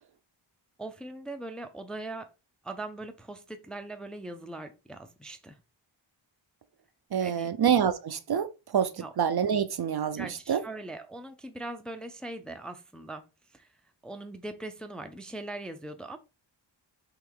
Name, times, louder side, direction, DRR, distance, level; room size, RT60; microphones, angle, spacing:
voice 1, 0.8-2.3 2.6-5.6 7.2-7.5 9.0-9.1 10.2-13.3 13.5-13.7 14.0-16.2, right 2 dB, ahead, 0.4 m, -40 dB
voice 2, 7.1-10.6, right 8 dB, 55° right, 0.5 m, -27 dB
3.7 x 3.0 x 4.5 m
wide cardioid pair, 135°, 48 cm